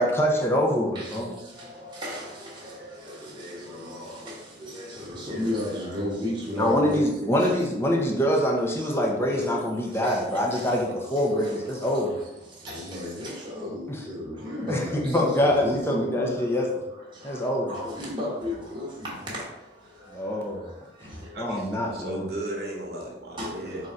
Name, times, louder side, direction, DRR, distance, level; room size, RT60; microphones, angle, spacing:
voice 1, 0.0-1.4 6.6-12.2 13.9-14.0 14.7-16.7 17.2-17.7 20.1-20.7 21.4-22.3, equal, 15° left, 0.7 m, -25 dB
voice 2, 0.9-7.1 7.4-7.5 8.8-16.7 16.9-21.9 23.4-23.9, left 1 dB, 25° right, 1.2 m, -35 dB
voice 3, 21.3-23.9, right 1 dB, 60° right, 1.0 m, -35 dB
3.8 x 2.5 x 4.3 m
head